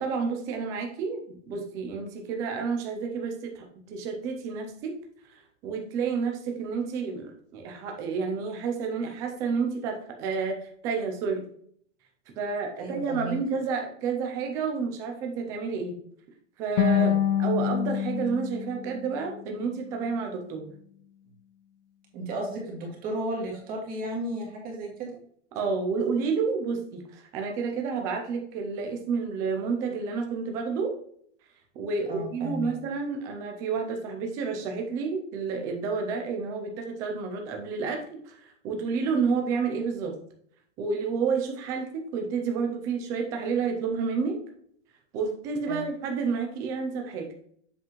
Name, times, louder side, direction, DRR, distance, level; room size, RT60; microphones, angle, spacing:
voice 1, 0.0-4.9 5.3-11.4 12.4-15.9 16.6-17.1 17.4-20.7 25.5-30.9 31.8-40.2 40.8-44.4 45.1-47.3, right 5 dB, 10° right, 3 dB, 0.3 m, -30 dB
voice 2, 12.8-13.4 16.9-17.2 22.1-25.1 32.1-32.7 45.7-45.9, right 1 dB, 25° right, -2 dB, 2.0 m, -34 dB
sound 1, 16.8-19.9, left 9 dB, 80° left, 1.3 m, -27 dB
7.5 x 5.6 x 3.0 m, 0.63 s
supercardioid pair, 170°, 35 cm